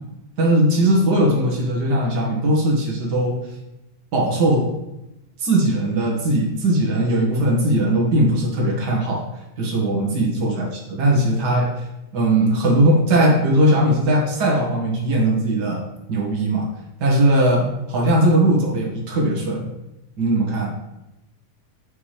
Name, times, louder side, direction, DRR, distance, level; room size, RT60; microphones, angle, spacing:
voice 1, 0.4-3.4 4.1-4.7 5.4-9.2 9.6-11.8 12.1-16.7 17.0-19.7 20.2-20.7, right 1 dB, 45° right, -2 dB, 1.4 m, -19 dB
6.7 x 5.7 x 3.3 m, 0.92 s
omnidirectional pair, 3.6 m